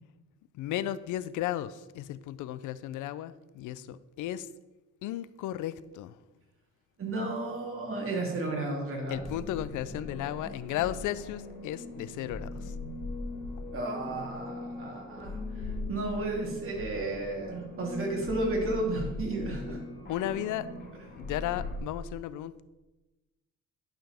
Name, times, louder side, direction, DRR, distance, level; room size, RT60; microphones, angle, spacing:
voice 1, 0.6-4.5 5.0-6.1 9.1-12.5 20.1-20.7 21.2-22.6, left 12 dB, 85° left, 16 dB, 0.5 m, -34 dB
voice 2, 7.0-9.2 13.7-19.8, right 2 dB, 45° right, -1 dB, 2.8 m, -33 dB
sound 1, 9.1-21.8, left 2 dB, 30° left, 2.7 m, -40 dB
11.5 x 5.7 x 3.5 m, 1.1 s
cardioid pair, 90°, 30 cm